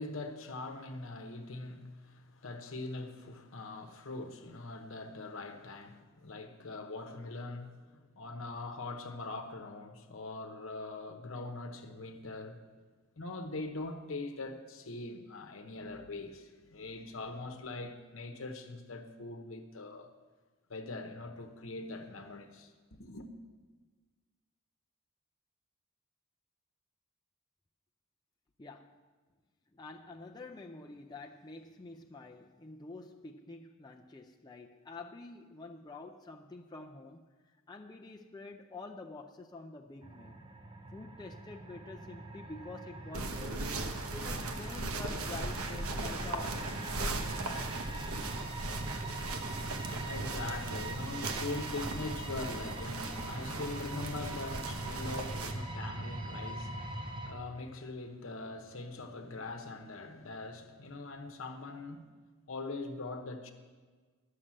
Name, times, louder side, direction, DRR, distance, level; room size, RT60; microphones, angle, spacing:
voice 1, 0.0-12.6 13.2-20.1 20.7-23.3 49.7-62.1 62.5-63.5, left 2 dB, 65° left, 1.0 m, -42 dB
voice 2, 28.6-28.9 29.7-37.2 37.7-40.4 40.9-43.7 44.1-46.6 47.0-48.1, left 3 dB, 20° left, 0.4 m, -48 dB
sound 1, 40.0-57.3, right 2 dB, 25° right, 0.8 m, -42 dB
sound 2, 43.1-55.5, right 2 dB, 90° right, 1.0 m, -38 dB
11.5 x 6.6 x 7.5 m
head